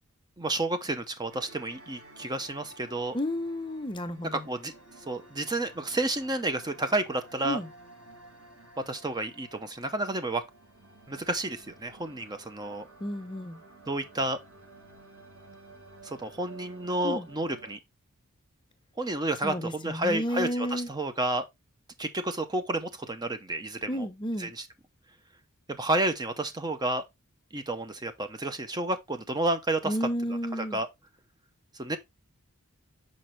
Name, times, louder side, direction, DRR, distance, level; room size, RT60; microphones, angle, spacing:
voice 1, 0.4-3.2 4.3-4.7 5.1-7.6 8.9-10.4 11.1-12.9 13.9-14.4 16.0-17.8 19.0-21.5 22.0-24.1 24.4-24.6 25.7-27.0 27.5-29.9 30.5-30.9 31.8-32.0, right 2 dB, 20° right, 0.6 m, -30 dB
sound 1, 1.3-17.8, right 2 dB, 85° right, 4.4 m, -53 dB
voice 2, 3.1-4.5 7.4-7.7 13.0-13.6 17.0-17.3 19.4-20.9 23.9-24.5 29.8-30.8, equal, 20° left, 0.7 m, -32 dB
5.9 x 5.2 x 3.1 m
head